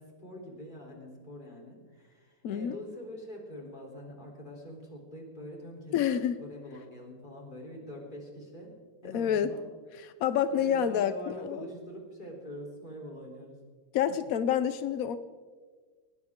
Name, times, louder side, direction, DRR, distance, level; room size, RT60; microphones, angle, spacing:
voice 1, 0.0-5.9 6.4-8.7 9.0-9.7 10.5-13.6, equal, 20° left, -1 dB, 3.7 m, -44 dB
voice 2, 2.4-2.8 5.9-6.4 9.1-9.5 9.9-11.6 13.9-15.2, left 9 dB, 80° left, 12 dB, 0.7 m, -28 dB
20.0 x 19.0 x 3.7 m, 1.5 s
omnidirectional pair, 2.3 m